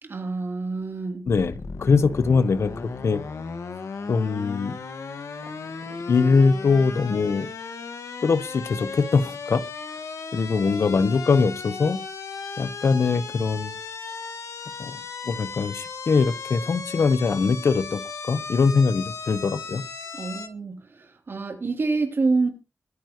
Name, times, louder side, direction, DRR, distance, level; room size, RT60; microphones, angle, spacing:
voice 1, 0.0-1.3 20.2-22.5, right 3 dB, 50° right, 3.2 m, -27 dB
sound 1, 1.3-20.5, left 5 dB, 85° left, 1.7 m, -36 dB
voice 2, 1.3-3.2 4.1-4.7 6.1-7.5 8.2-9.6 10.3-12.0 12.6-13.7 14.8-15.0 15.2-19.8, left 4 dB, 65° left, 1.0 m, -22 dB
23.0 x 9.8 x 3.1 m
wide cardioid pair, 170°, 5 cm